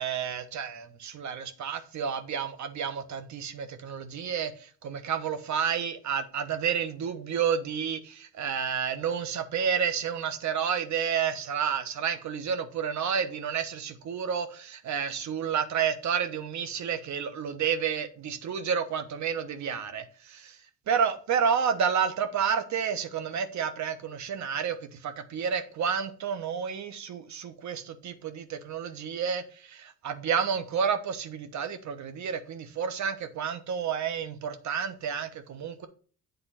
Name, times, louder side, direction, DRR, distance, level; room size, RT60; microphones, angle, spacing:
voice 1, 0.0-20.6 20.9-35.9, right 7 dB, 70° right, 1.1 m, -30 dB
8.0 x 3.8 x 5.6 m
cardioid pair, 90°, 30 cm